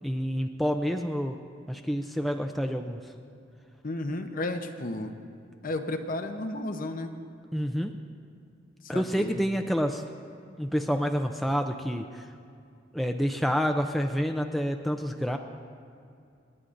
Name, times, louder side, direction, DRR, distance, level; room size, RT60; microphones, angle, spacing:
voice 1, 0.0-1.4 1.7-3.1 7.5-7.9 8.9-10.0 10.6-12.3 12.9-15.4, equal, ahead, 4 dB, 0.4 m, -28 dB
voice 2, 3.8-5.2 5.6-7.1 8.8-9.4, left 2 dB, 45° left, 6 dB, 0.8 m, -33 dB
27.5 x 9.8 x 2.5 m, 2.5 s
head